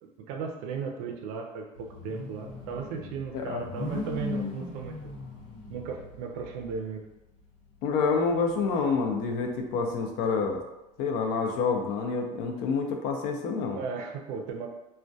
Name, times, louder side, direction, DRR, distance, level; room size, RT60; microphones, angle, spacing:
voice 1, 0.0-5.0 5.7-7.1 13.7-14.7, right 5 dB, 65° right, 2 dB, 0.4 m, -36 dB
sound 1, 1.8-6.8 7.4-7.5 7.9-9.6, left 3 dB, 85° left, 1.0 m, -39 dB
voice 2, 3.3-3.7 7.8-10.6 11.0-13.8, left 4 dB, 60° left, 3 dB, 0.4 m, -28 dB
2.2 x 2.1 x 2.6 m, 0.97 s
cardioid pair, 170°, 16 cm